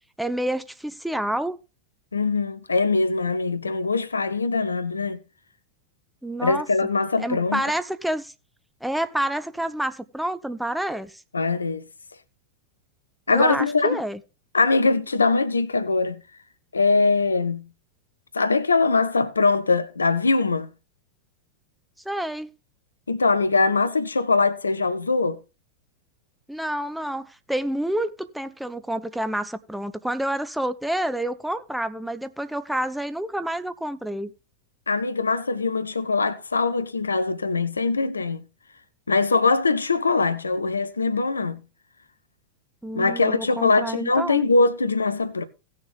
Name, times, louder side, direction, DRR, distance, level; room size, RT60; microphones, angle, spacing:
voice 1, 0.2-1.6 6.2-6.7 7.2-8.3 8.8-11.2 13.3-14.2 22.0-22.5 26.5-34.3 42.8-44.4, right 1 dB, ahead, 0.7 m, -28 dB
voice 2, 2.1-5.2 6.4-7.6 11.3-11.8 13.3-14.0 14.5-16.2 16.7-17.7 18.3-20.7 23.1-25.4 34.9-38.5 39.1-41.6 42.9-45.4, left 3 dB, 75° left, 0.7 m, -22 dB
17.0 x 6.6 x 3.4 m
figure-of-eight pair, 90°, 0 cm